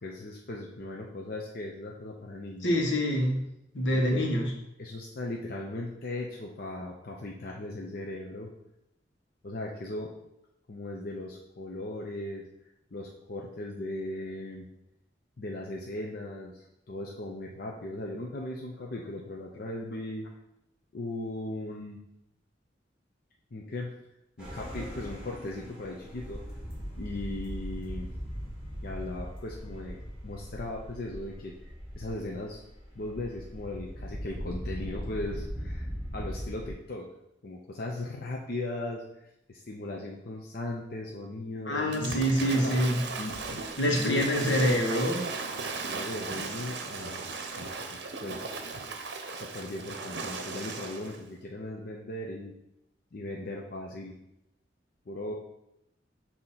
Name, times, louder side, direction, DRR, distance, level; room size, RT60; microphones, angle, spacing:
voice 1, 0.0-2.7 3.9-4.3 4.8-8.5 9.4-10.1 10.7-12.5 12.9-14.6 15.4-20.3 20.9-22.0 23.5-23.9 24.4-26.4 26.9-28.1 28.8-31.5 32.0-32.6 32.9-35.9 36.1-37.1 37.4-39.0 39.5-42.8 43.2-43.6 43.9-44.8 45.9-47.7 48.2-48.5 49.3-52.5 53.1-54.1 55.1-55.3, left 2 dB, 55° left, -2 dB, 0.6 m, -38 dB
voice 2, 2.6-3.4 3.7-4.5 41.7-43.0 43.8-45.3, equal, 80° left, 0 dB, 1.3 m, -26 dB
sound 1, 24.4-36.7, equal, 5° right, 1.8 m, -39 dB
Waves surf / Splash splatter, 41.9-51.2, right 4 dB, 65° right, 0.7 m, -37 dB
6.5 x 2.9 x 5.6 m, 0.84 s
head